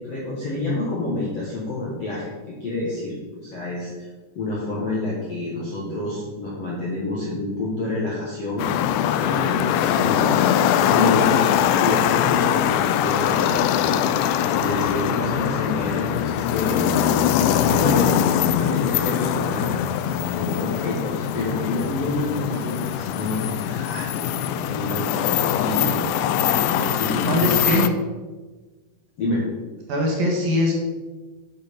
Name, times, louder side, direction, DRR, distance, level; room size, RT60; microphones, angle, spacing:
voice 1, 0.0-4.1 4.3-8.7 9.2-11.5 11.8-13.9 14.2-16.9 17.6-18.1 18.4-19.7 20.3-27.8 29.2-29.5, left 2 dB, 55° left, -6 dB, 1.8 m, -28 dB
sound 1, 8.6-27.9, left 10 dB, 85° left, 2.9 m, -22 dB
voice 2, 27.3-27.9 29.9-30.7, left 1 dB, 60° right, -1 dB, 3.0 m, -21 dB
9.4 x 6.8 x 5.3 m, 1.3 s
omnidirectional pair, 5.2 m